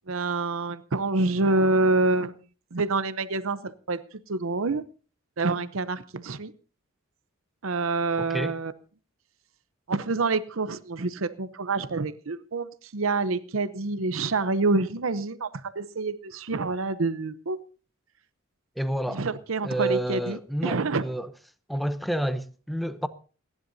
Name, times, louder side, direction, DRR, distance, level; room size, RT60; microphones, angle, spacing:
voice 1, 0.1-2.3 2.7-4.0 4.3-4.8 5.4-6.5 7.6-8.7 9.9-17.6 19.1-21.0, right 3 dB, 70° right, 0.8 m, -27 dB
voice 2, 8.2-8.5 18.8-19.3 19.6-21.3 21.7-23.1, right 1 dB, ahead, 0.8 m, -29 dB
28.5 x 11.0 x 2.7 m
head